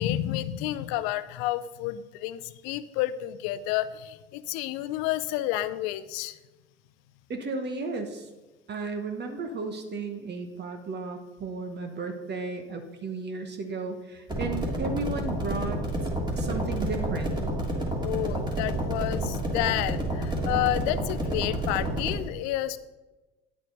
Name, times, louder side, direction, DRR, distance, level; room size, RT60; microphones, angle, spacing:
voice 1, 0.0-6.4 18.0-22.8, left 14 dB, 60° left, 15 dB, 0.6 m, -30 dB
voice 2, 7.3-8.3 8.7-15.9 16.3-17.4, right 3 dB, 35° right, 6 dB, 1.1 m, -34 dB
sound 1, 14.3-22.2, right 1 dB, 15° right, 2.8 m, -29 dB
9.6 x 8.2 x 4.0 m, 1.1 s
hypercardioid pair, 70°, 31 cm